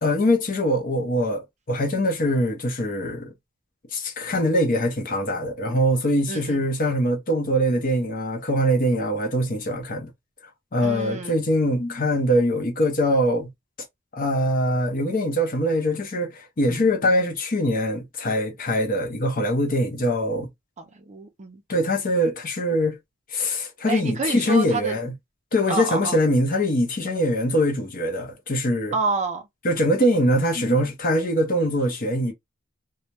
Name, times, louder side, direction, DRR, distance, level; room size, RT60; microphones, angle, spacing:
voice 1, 0.0-3.3 3.9-10.1 10.7-13.5 14.1-20.5 21.7-23.0 23.3-25.1 25.5-29.0 29.6-32.3, equal, 40° left, 0.6 m, -23 dB
voice 2, 6.3-6.6 10.8-11.4 20.8-21.6 23.9-24.9 25.7-26.2 28.9-29.5, right 3 dB, 35° right, 0.4 m, -28 dB
2.2 x 2.1 x 2.8 m
head